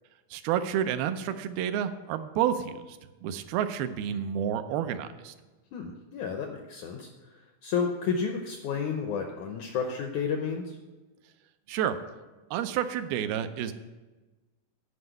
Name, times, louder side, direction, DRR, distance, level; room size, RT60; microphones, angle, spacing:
voice 1, 0.3-5.3 11.7-12.0 12.5-13.7, right 9 dB, 90° right, 9 dB, 2.5 m, -30 dB
voice 2, 5.7-10.8, left 6 dB, 80° left, 4 dB, 1.7 m, -32 dB
9.9 x 5.2 x 8.0 m, 1.2 s
omnidirectional pair, 4.2 m